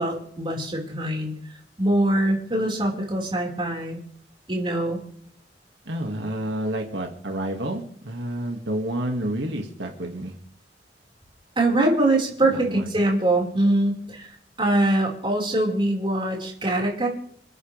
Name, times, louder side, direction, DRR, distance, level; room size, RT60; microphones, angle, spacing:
voice 1, 0.0-1.3 1.8-4.0 4.5-5.0 11.6-14.3 14.6-17.1, right 1 dB, 30° right, -2 dB, 5.1 m, -23 dB
voice 2, 5.9-10.4 12.5-13.0, right 1 dB, 85° right, 2 dB, 2.3 m, -29 dB
28.0 x 9.7 x 3.5 m, 0.63 s
head